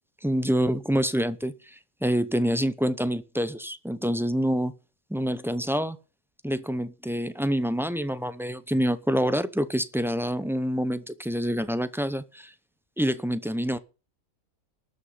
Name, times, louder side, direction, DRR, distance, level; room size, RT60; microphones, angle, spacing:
voice 1, 0.2-4.7 5.1-6.0 6.4-12.5 13.0-13.8, equal, 5° right, 0.3 m, -27 dB
12.5 x 6.2 x 9.3 m
omnidirectional pair, 1.4 m